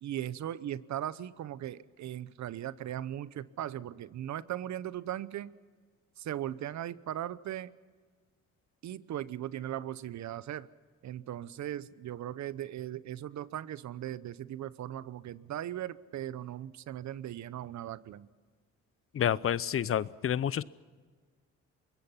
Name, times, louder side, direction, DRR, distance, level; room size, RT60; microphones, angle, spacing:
voice 1, 0.0-5.5 6.2-7.7 8.8-10.7 11.0-18.3, right 11 dB, 65° right, 17 dB, 0.9 m, -38 dB
voice 2, 19.1-20.6, left 9 dB, 45° left, 19 dB, 0.7 m, -29 dB
24.5 x 22.0 x 5.7 m, 1.5 s
cardioid pair, 90°, 30 cm